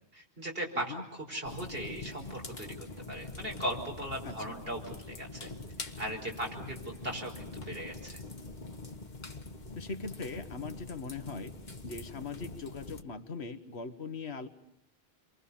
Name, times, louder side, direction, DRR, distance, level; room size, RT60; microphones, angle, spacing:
voice 1, 0.1-2.7 3.1-5.5 5.8-6.8 7.0-8.2, right 1 dB, 60° right, 1 dB, 5.4 m, -38 dB
sound 1, 1.4-13.0, left 3 dB, 45° left, 1.6 m, -44 dB
voice 2, 4.2-4.6 9.7-11.5 11.8-14.5, left 4 dB, 75° left, 10 dB, 1.7 m, -40 dB
28.5 x 23.5 x 7.1 m, 0.75 s
omnidirectional pair, 1.1 m